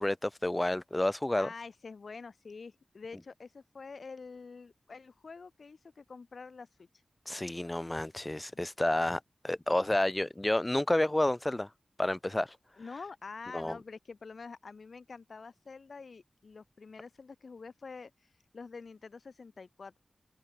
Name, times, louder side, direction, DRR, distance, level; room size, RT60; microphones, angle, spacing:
voice 1, 0.0-1.5 7.3-11.7 12.0-12.6 13.5-13.8, left 1 dB, 20° left, 2.9 m, -30 dB
voice 2, 1.4-6.9 8.5-8.6 12.8-18.1 18.5-20.0, left 4 dB, 70° left, 2.4 m, -47 dB
cardioid pair, 45°, 0 cm